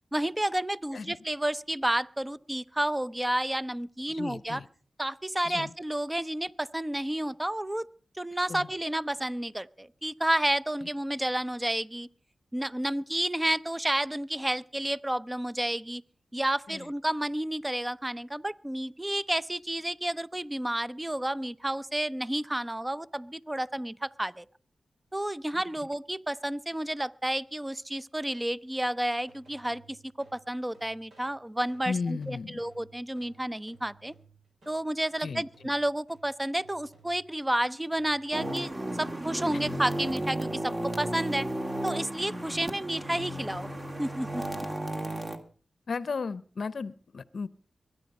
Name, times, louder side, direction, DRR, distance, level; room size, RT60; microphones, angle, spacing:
voice 1, 0.1-4.6 5.0-7.9 8.2-12.1 12.5-16.0 16.3-24.5 25.1-34.1 34.7-38.7 39.0-41.5 41.8-43.7 44.0-44.4, right 1 dB, 15° right, 16 dB, 0.7 m, -31 dB
voice 2, 4.1-4.7 5.4-5.7 8.5-8.7 16.7-16.9 25.5-25.6 31.9-32.6 35.2-35.4 45.9-47.5, left 4 dB, 70° left, 17 dB, 0.6 m, -35 dB
sound 1, 29.1-34.8 35.2-38.7, right 4 dB, 80° right, 6.8 m, -59 dB
sound 2, 38.3-45.4, right 1 dB, 35° right, 2.3 m, -34 dB
22.0 x 10.0 x 5.4 m, 0.42 s
cardioid pair, 40°, 0 cm